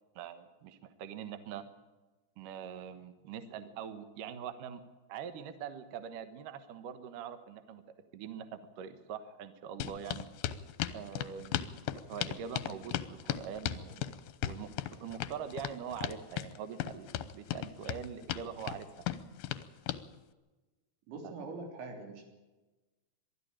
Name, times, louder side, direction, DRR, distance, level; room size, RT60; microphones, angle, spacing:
voice 1, 0.2-1.6 2.4-4.8 5.1-7.8 8.1-10.3 10.9-14.1 14.4-19.1 21.2-21.3, right 8 dB, 65° right, 10 dB, 2.4 m, -43 dB
sound 1, 9.8-20.0, left 13 dB, 75° left, 2.3 m, -36 dB
voice 2, 21.1-22.3, right 3 dB, 90° right, 3 dB, 5.7 m, -43 dB
23.0 x 13.5 x 8.9 m, 1.2 s
omnidirectional pair, 5.0 m